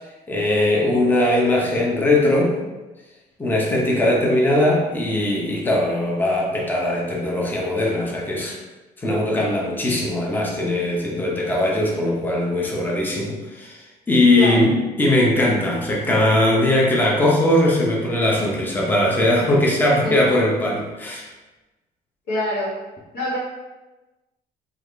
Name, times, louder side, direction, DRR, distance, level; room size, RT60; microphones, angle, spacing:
voice 1, 0.3-2.6 3.4-8.6 9.0-21.3, left 1 dB, 10° left, -3 dB, 0.6 m, -20 dB
voice 2, 19.9-20.3 22.3-22.8 23.1-23.4, left 1 dB, 85° left, -5 dB, 1.3 m, -25 dB
3.3 x 2.4 x 3.2 m, 1.1 s
cardioid pair, 110°, 17 cm